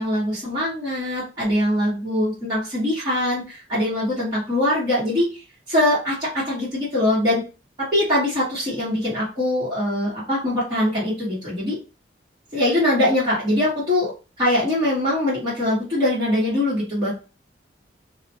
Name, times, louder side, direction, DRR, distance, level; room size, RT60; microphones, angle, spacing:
voice 1, 0.0-5.4 5.7-7.4 7.8-11.8 12.5-14.1 14.4-17.1, left 1 dB, 25° right, -10 dB, 1.1 m, -22 dB
2.4 x 2.1 x 2.7 m, 0.32 s
head